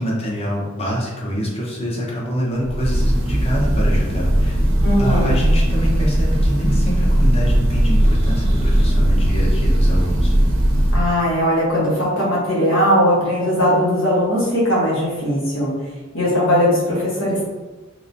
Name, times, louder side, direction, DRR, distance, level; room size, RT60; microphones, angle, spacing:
voice 1, 0.0-4.6 5.0-10.3, equal, 30° left, -4 dB, 0.8 m, -25 dB
Breathing / Bird, 2.6-11.2, right 1 dB, 75° right, 0.6 m, -17 dB
voice 2, 4.8-5.4 10.9-15.7 16.1-17.5, equal, 75° left, -7 dB, 1.2 m, -19 dB
3.1 x 2.9 x 2.6 m, 1.2 s
head